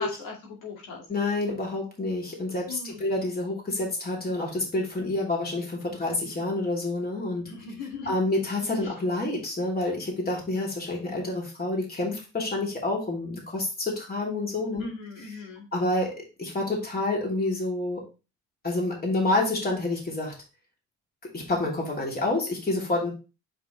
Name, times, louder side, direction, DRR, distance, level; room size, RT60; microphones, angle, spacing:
voice 1, 0.0-1.0 2.7-3.1 7.5-8.1 8.8-8.9 14.8-15.7, left 4 dB, 90° left, -1 dB, 2.2 m, -39 dB
voice 2, 1.1-7.4 8.0-14.9 15.2-15.4 15.7-18.0 18.6-20.3 21.3-23.1, left 2 dB, 30° left, -2 dB, 3.0 m, -28 dB
5.6 x 5.4 x 3.1 m, 0.31 s
cardioid pair, 90°, 30 cm